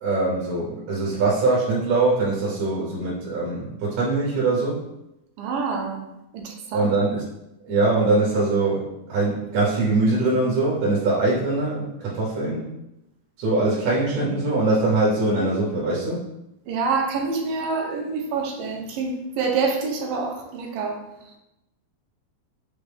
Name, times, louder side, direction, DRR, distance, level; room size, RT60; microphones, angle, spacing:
voice 1, 0.0-4.8 6.7-7.2 7.7-12.7 13.4-16.3, right 2 dB, 65° right, -6 dB, 1.9 m, -22 dB
voice 2, 5.4-6.0 6.3-6.9 16.7-21.0, right 4 dB, 85° right, 1 dB, 2.4 m, -26 dB
6.1 x 2.6 x 3.3 m, 0.88 s
omnidirectional pair, 4.0 m